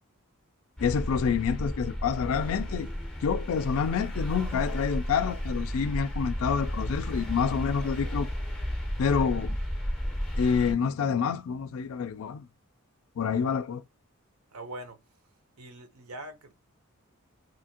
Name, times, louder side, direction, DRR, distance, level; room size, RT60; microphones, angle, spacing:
voice 1, 0.8-2.9 3.2-8.3 9.0-9.6 10.4-12.5 13.2-13.8, left 6 dB, 65° left, 0.3 m, -28 dB
sound 1, 0.8-10.7, equal, 5° left, 0.5 m, -33 dB
voice 2, 14.5-15.0 15.6-16.5, right 1 dB, 75° right, 0.8 m, -42 dB
2.7 x 2.6 x 2.7 m
head